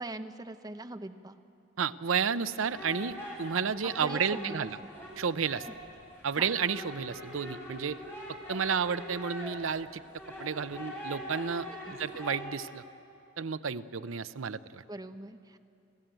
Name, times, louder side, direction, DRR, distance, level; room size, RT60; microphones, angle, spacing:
voice 1, 0.0-1.3 4.0-4.9 5.7-5.8 6.4-6.5 11.7-12.2 14.9-15.6, right 2 dB, 20° right, 8 dB, 0.8 m, -42 dB
voice 2, 1.8-4.8 5.2-5.7 6.2-8.0 8.3-10.0 10.4-11.7 12.0-12.8 13.4-14.8, right 6 dB, 75° right, 13 dB, 0.6 m, -31 dB
sound 1, 2.6-12.4, equal, 10° left, 5.7 m, -43 dB
29.5 x 14.0 x 9.0 m, 2.7 s
head